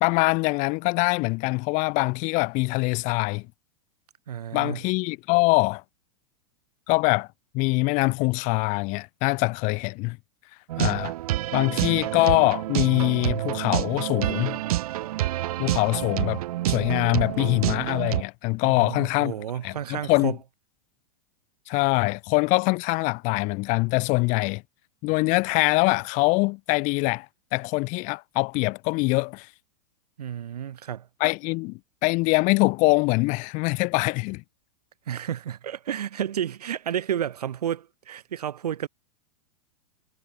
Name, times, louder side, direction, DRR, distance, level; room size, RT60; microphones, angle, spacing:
voice 1, 0.0-3.5 4.5-5.8 6.9-7.3 7.5-10.2 10.8-11.1 11.5-14.6 15.6-16.4 16.7-19.3 19.6-20.4 21.7-24.6 25.0-27.3 27.5-29.5 31.2-34.4, left 27 dB, 40° left, 0.6 m, -23 dB
voice 2, 4.3-4.8 18.6-20.4 30.2-31.1 35.1-38.9, right 10 dB, 85° right, 3.5 m, -31 dB
sound 1, 10.7-18.2, right 15 dB, 70° right, 1.0 m, -28 dB
hypercardioid pair, 125°, 19 cm